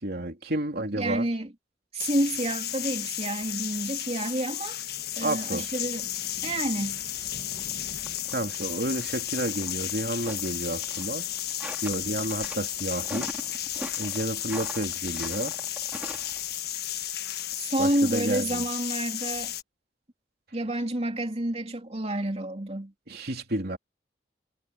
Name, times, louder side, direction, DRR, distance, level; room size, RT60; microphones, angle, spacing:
voice 1, 0.0-1.3 5.2-5.7 8.3-11.3 11.8-13.3 14.0-15.6 17.8-18.7 23.1-23.8, right 1 dB, 60° right, 3.2 m, -31 dB
voice 2, 1.0-1.5 1.9-4.8 5.2-6.1 6.4-7.0 17.5-19.5 20.5-22.9, right 1 dB, 35° right, 3.0 m, -29 dB
sound 1, 2.0-19.6, left 12 dB, 60° left, 1.4 m, -33 dB
sound 2, 6.9-16.6, right 1 dB, 10° right, 3.1 m, -43 dB
head